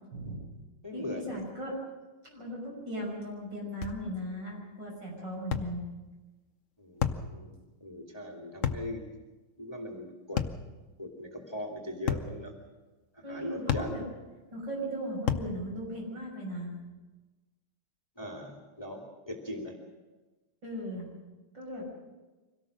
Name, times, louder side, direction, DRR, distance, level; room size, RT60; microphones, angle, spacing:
voice 1, 0.1-0.4 0.9-1.8 2.2-5.8 13.2-14.0 14.5-16.7 20.6-21.1 21.5-21.9, equal, 60° right, -2 dB, 7.0 m, -37 dB
voice 2, 0.8-1.4 6.8-9.0 9.6-10.4 11.0-12.5 13.1-13.9 18.2-19.7, left 1 dB, 10° left, 0 dB, 2.3 m, -40 dB
sound 1, 3.8-4.0 5.5-5.7 7.0-7.3 8.6-8.9 10.4-10.6 12.1-12.3 13.7-13.9 15.3-15.5, left 8 dB, 55° left, 0.9 m, -30 dB
24.5 x 17.5 x 6.4 m, 1.2 s
omnidirectional pair, 2.3 m